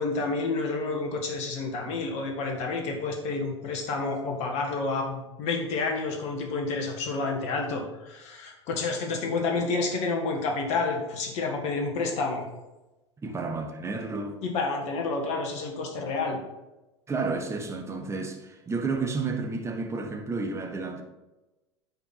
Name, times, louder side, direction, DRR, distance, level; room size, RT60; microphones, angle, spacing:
voice 1, 0.0-12.5 14.4-16.4, left 3 dB, 45° left, 1.8 m, -29 dB
voice 2, 13.2-14.4 17.1-21.0, right 4 dB, 20° right, 1.4 m, -31 dB
9.9 x 4.4 x 5.7 m
figure-of-eight pair, 85°, 15 cm